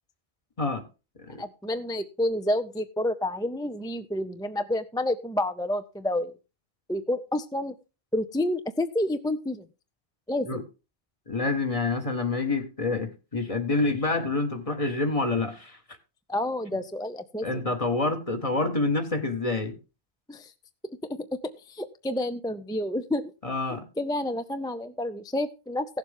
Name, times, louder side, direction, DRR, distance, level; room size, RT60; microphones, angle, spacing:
voice 1, 1.4-6.3 6.9-7.7 8.1-9.7 10.3-10.5 16.3-17.5 20.3-20.5 21.2-21.3 21.7-23.3 24.0-25.9, left 1 dB, 5° left, 10 dB, 0.3 m, -29 dB
voice 2, 11.3-15.8 17.4-19.8 23.4-23.8, left 3 dB, 35° left, 5 dB, 1.6 m, -27 dB
16.0 x 7.3 x 3.6 m, 0.30 s
omnidirectional pair, 1.1 m